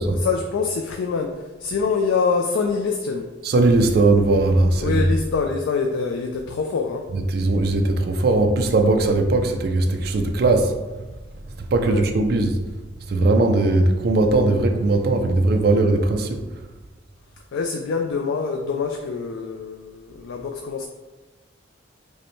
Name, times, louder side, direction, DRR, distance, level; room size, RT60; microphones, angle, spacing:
voice 1, 0.1-3.3 4.8-7.0 11.8-12.1 17.5-20.9, left 5 dB, 80° left, 3 dB, 0.3 m, -25 dB
voice 2, 3.4-5.1 7.1-10.7 11.6-12.6 13.1-16.4, right 2 dB, 50° right, 4 dB, 0.4 m, -19 dB
5.1 x 2.1 x 3.1 m, 1.2 s
head